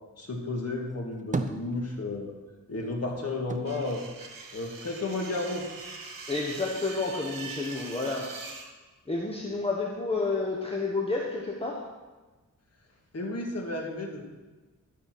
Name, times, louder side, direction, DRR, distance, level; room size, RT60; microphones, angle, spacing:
voice 1, 0.2-2.3 2.7-4.1 4.5-5.7 13.1-14.2, left 2 dB, 50° left, 0 dB, 1.7 m, -32 dB
sound 1, 0.9-2.4 2.7-5.1 5.4-6.3, right 3 dB, 25° right, 0.6 m, -37 dB
sound 2, 3.6-8.7, right 4 dB, 90° right, 1.5 m, -42 dB
voice 2, 6.3-8.3 9.1-11.8, left 3 dB, 15° left, -3 dB, 1.2 m, -30 dB
13.0 x 5.5 x 6.0 m, 1.2 s
wide cardioid pair, 145°, 33 cm